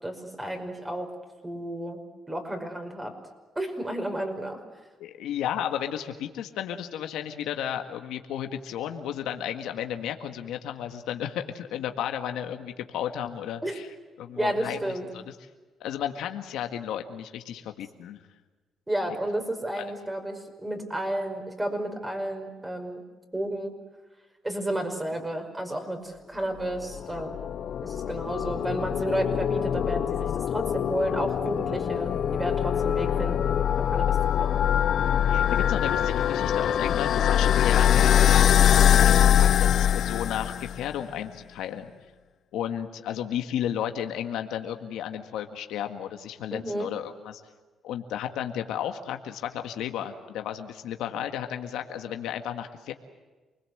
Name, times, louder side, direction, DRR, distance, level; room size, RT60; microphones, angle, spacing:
voice 1, 0.0-1.1 1.4-2.0 2.3-3.1 3.6-4.6 13.6-13.7 14.4-15.0 18.9-23.0 23.3-23.7 24.4-27.4 27.8-34.6 46.5-46.9, right 1 dB, 15° right, 4 dB, 5.5 m, -32 dB
voice 2, 5.0-13.9 14.2-15.2 15.8-18.2 19.1-19.2 19.8-19.9 32.8-32.9 35.2-41.9 42.5-47.4 47.8-52.9, left 10 dB, 90° left, 6 dB, 1.8 m, -33 dB
sound 1, 26.7-40.9, left 9 dB, 65° left, 0.7 m, -23 dB
28.0 x 21.0 x 8.0 m, 1.3 s
cardioid pair, 90°, 0 cm